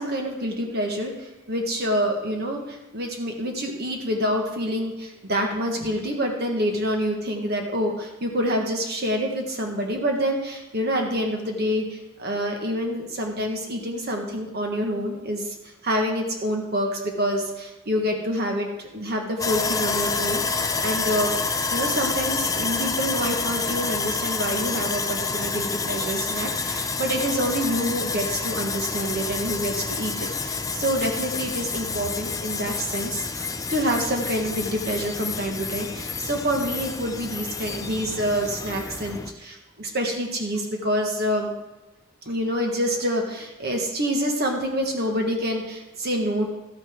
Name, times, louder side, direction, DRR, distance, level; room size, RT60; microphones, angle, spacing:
voice 1, 0.0-15.5 15.8-41.5 42.2-46.5, equal, 50° right, 2 dB, 1.5 m, -27 dB
Sawing, 19.4-39.3, left 4 dB, 15° left, 0.5 m, -28 dB
12.5 x 9.1 x 3.7 m, 1.0 s
head